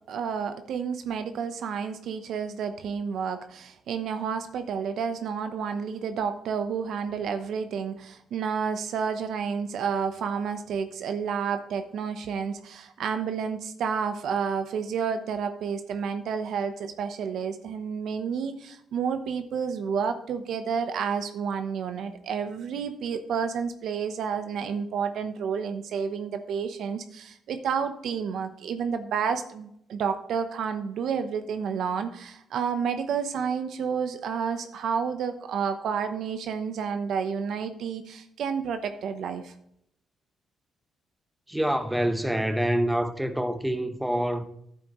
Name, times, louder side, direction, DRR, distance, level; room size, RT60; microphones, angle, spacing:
voice 1, 0.1-39.5, right 6 dB, 70° right, 0.8 m, -30 dB
voice 2, 41.5-44.5, right 1 dB, 5° right, 1.0 m, -26 dB
10.5 x 8.2 x 3.1 m
cardioid pair, 90°, 0 cm